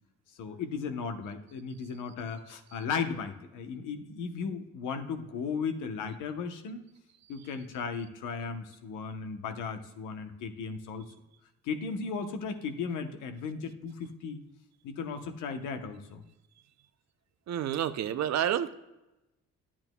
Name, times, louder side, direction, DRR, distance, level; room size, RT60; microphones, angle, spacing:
voice 1, 0.4-6.8 7.3-11.0 11.6-14.4 14.8-16.2, left 5 dB, 90° left, 7 dB, 0.9 m, -36 dB
voice 2, 17.5-18.7, right 10 dB, 65° right, 11 dB, 0.6 m, -29 dB
10.5 x 8.6 x 2.2 m, 0.96 s
cardioid pair, 90°, 30 cm